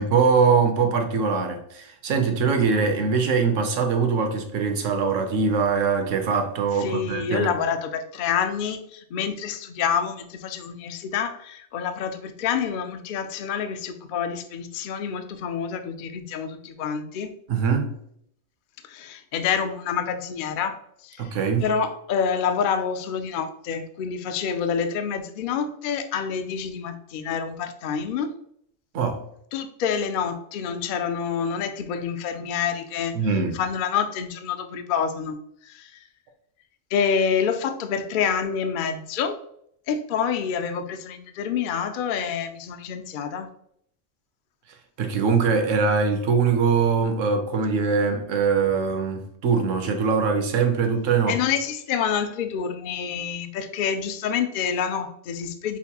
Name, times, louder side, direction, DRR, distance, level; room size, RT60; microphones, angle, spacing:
voice 1, 0.0-7.5 17.5-17.9 21.2-21.6 28.9-29.2 33.1-33.6 45.0-51.4, right 5 dB, 75° right, 1.0 m, -22 dB
voice 2, 6.8-17.3 18.9-20.8 21.0-21.4 21.6-28.3 29.5-33.1 33.5-35.4 35.6-36.0 36.9-39.3 39.9-43.5 51.3-55.8, left 7 dB, 65° left, 0.5 m, -27 dB
5.7 x 2.5 x 2.8 m
omnidirectional pair, 1.3 m